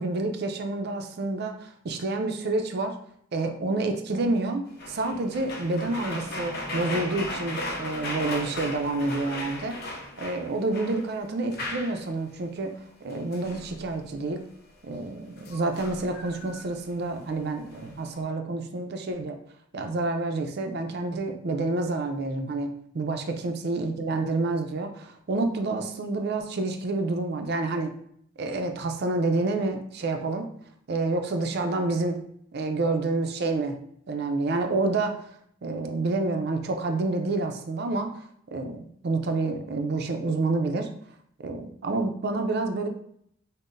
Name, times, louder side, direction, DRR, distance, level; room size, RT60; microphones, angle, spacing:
voice 1, 0.0-2.9 3.3-12.7 13.0-14.4 14.8-19.3 19.7-27.9 28.4-30.5 30.9-32.2 32.5-33.8 34.1-35.2 35.6-38.1 38.5-40.9 41.4-42.9, right 2 dB, 55° right, 5 dB, 0.5 m, -28 dB
sound 1, 4.8-11.1 11.4-12.0 13.1-13.9 15.4-17.2 17.7-18.2, left 1 dB, 50° left, 0.5 m, -36 dB
5.5 x 2.1 x 2.5 m, 0.68 s
head